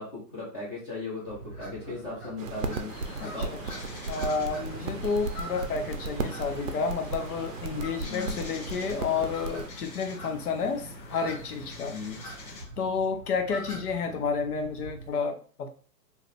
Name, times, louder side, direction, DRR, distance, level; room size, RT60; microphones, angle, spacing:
voice 1, 0.0-2.9 3.2-3.5 8.0-8.4 11.9-12.2 14.0-14.2, left 3 dB, 20° left, -8 dB, 0.7 m, -37 dB
sound 1, 1.3-15.1, right 2 dB, 5° right, 1.3 m, -44 dB
sound 2, 2.4-9.7, right 4 dB, 55° right, 0.5 m, -36 dB
sound 3, 2.9-12.7, left 4 dB, 90° left, 1.1 m, -46 dB
voice 2, 3.2-3.6 4.1-12.0 12.8-15.7, left 5 dB, 65° left, 5 dB, 0.8 m, -30 dB
2.8 x 2.4 x 3.2 m, 0.41 s
hypercardioid pair, 150°, 50 cm